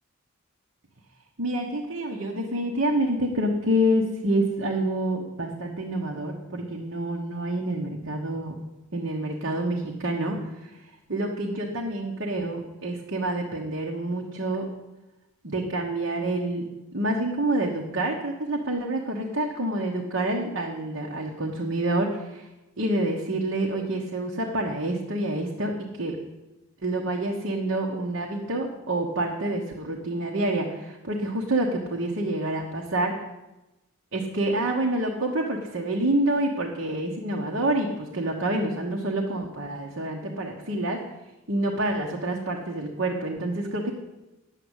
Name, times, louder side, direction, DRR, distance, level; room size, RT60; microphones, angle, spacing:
voice 1, 1.4-8.6 8.9-10.7 11.1-14.7 15.4-16.7 16.9-22.5 22.8-26.2 26.8-33.2 34.1-41.0 41.5-43.9, right 1 dB, 60° right, -1 dB, 1.3 m, -27 dB
10.0 x 7.9 x 8.1 m, 1.0 s
head